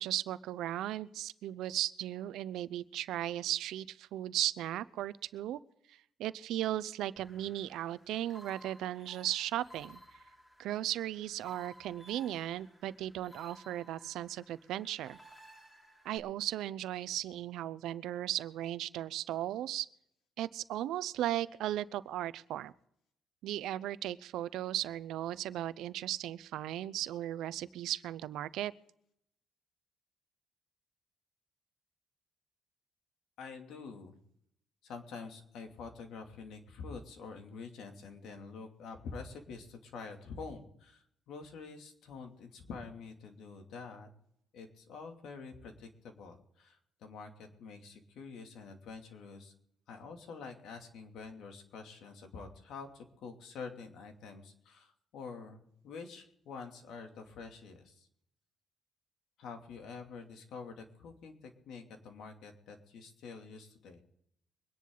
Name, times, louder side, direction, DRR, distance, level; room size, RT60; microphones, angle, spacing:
voice 1, 0.0-5.6 5.9-10.0 10.6-15.2 16.0-19.9 20.4-22.7 23.4-28.7, right 13 dB, 85° right, 16 dB, 0.6 m, -36 dB
sound 1, 7.2-16.2, equal, 15° left, 3.3 m, -57 dB
voice 2, 33.4-34.2 34.8-44.1 44.5-49.5 49.9-58.1 59.4-64.0, left 4 dB, 80° left, 4 dB, 2.7 m, -47 dB
24.0 x 10.5 x 3.9 m, 0.72 s
cardioid pair, 90°, 0 cm